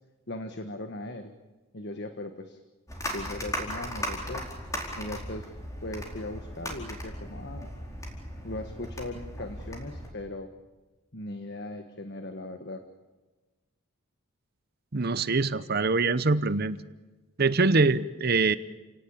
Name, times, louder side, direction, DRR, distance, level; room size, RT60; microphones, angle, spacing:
voice 1, 0.3-1.3 1.7-2.6 3.1-4.5 5.0-5.5 5.8-7.7 8.4-10.5 11.1-12.8, left 1 dB, 50° left, 7 dB, 1.5 m, -38 dB
sound 1, 2.9-10.1, equal, 15° left, 4.5 m, -37 dB
voice 2, 14.9-16.8 17.4-18.6, right 3 dB, 45° right, 15 dB, 0.8 m, -24 dB
30.0 x 18.5 x 8.9 m, 1.2 s
head